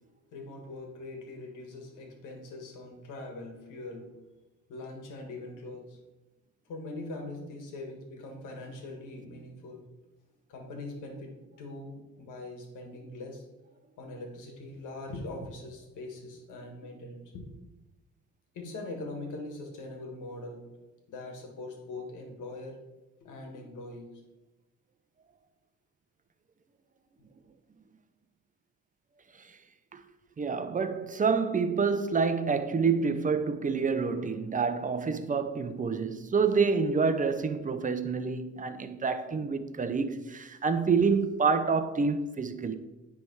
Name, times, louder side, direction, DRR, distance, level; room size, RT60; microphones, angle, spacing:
voice 1, 0.3-4.1 4.7-6.0 6.7-9.8 10.5-13.5 14.0-17.5 18.5-20.7 21.1-22.8 23.2-24.2, left 2 dB, 90° left, 1.7 m, -42 dB
voice 2, 30.4-42.8, right 5 dB, 25° right, 0.7 m, -28 dB
9.7 x 3.6 x 4.7 m
cardioid pair, 90°, 30 cm